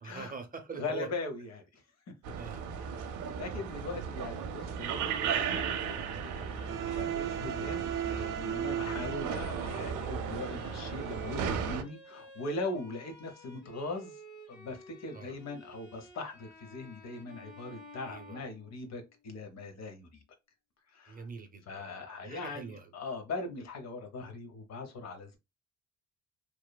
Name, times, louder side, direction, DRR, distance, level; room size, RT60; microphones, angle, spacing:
voice 1, 0.0-1.1 2.3-2.7 15.1-15.3 18.1-18.4 21.1-21.9 22.2-22.9, right 5 dB, 30° right, 0.7 m, -43 dB
voice 2, 0.8-1.8 2.8-14.2 14.5-20.2 20.9-21.2 21.7-25.4, left 3 dB, 60° left, 0.9 m, -40 dB
sound 1, 2.2-11.8, right 8 dB, 85° right, 0.6 m, -34 dB
Bowed string instrument, 4.8-19.1, left 1 dB, 35° left, 1.1 m, -53 dB
2.9 x 2.0 x 2.3 m
cardioid pair, 90°, 30 cm